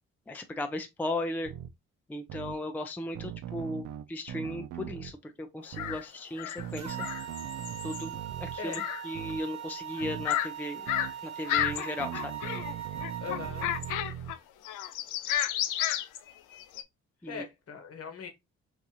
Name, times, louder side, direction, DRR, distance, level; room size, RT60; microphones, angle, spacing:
voice 1, 0.3-1.5 2.1-7.1 7.8-10.8 11.2-12.3 17.2-17.4, left 1 dB, 5° left, 0.4 m, -36 dB
sound 1, 1.4-1.7 2.3-2.6 3.2-5.1 5.7-6.0 6.6-8.6 9.1-9.4 10.0-10.3 10.9-11.1 11.6-14.3, right 10 dB, 80° right, 0.5 m, -40 dB
sound 2, 5.8-6.0 6.4-8.1 8.7-9.0 9.3-9.4 10.0-10.5 10.9-11.1 11.5-12.7 13.0-14.4 14.6-16.8, left 12 dB, 85° left, 0.5 m, -32 dB
sound 3, 6.8-14.0, right 10 dB, 60° right, 0.9 m, -41 dB
voice 2, 8.6-8.9 13.2-13.7 17.2-18.3, left 6 dB, 50° left, 1.1 m, -40 dB
3.9 x 2.4 x 2.8 m
cardioid pair, 90°, 30 cm